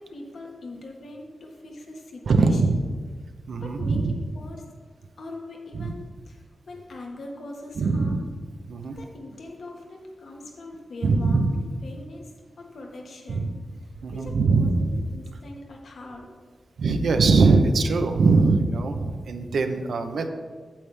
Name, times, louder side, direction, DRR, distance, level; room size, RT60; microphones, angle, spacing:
voice 1, 0.0-2.6 3.6-4.7 5.2-8.2 8.9-13.5 14.1-16.3, left 2 dB, 75° left, 1 dB, 1.4 m, -41 dB
voice 2, 2.3-2.8 3.5-4.1 5.8-5.9 7.8-8.2 8.7-9.0 11.0-11.5 13.3-13.5 14.0-14.9 16.8-20.3, right 3 dB, 80° right, 6 dB, 0.7 m, -21 dB
8.7 x 8.0 x 3.4 m, 1.5 s
cardioid pair, 80°, 0 cm